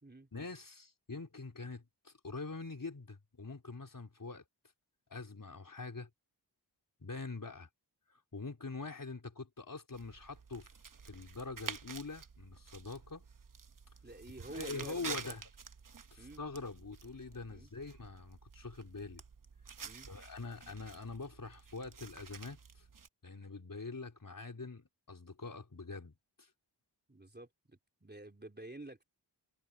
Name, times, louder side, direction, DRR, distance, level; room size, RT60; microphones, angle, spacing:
voice 1, 0.3-4.4 5.1-6.1 7.0-7.7 8.1-10.7 11.1-13.2 14.5-15.4 16.1-19.2 20.1-22.9 23.2-26.5, left 3 dB, 50° left, 4.1 m, -44 dB
sound 1, 9.9-23.1, right 6 dB, 50° right, 1.0 m, -50 dB
voice 2, 14.0-15.4 16.2-16.4 17.5-17.7 19.8-20.1 27.1-29.0, right 2 dB, 25° right, 3.9 m, -49 dB
cardioid pair, 50°, 42 cm